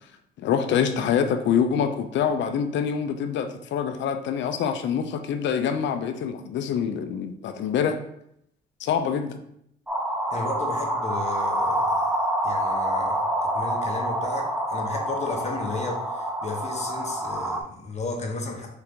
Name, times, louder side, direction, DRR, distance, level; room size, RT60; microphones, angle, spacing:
voice 1, 0.4-8.0 8.8-9.4, left 7 dB, 65° left, 8 dB, 0.5 m, -25 dB
sound 1, 9.9-17.6, right 1 dB, 5° right, 0.4 m, -27 dB
voice 2, 10.3-12.1 12.4-18.7, left 3 dB, 35° left, 1 dB, 1.0 m, -34 dB
3.8 x 2.8 x 3.5 m, 0.74 s
cardioid pair, 90°, 20 cm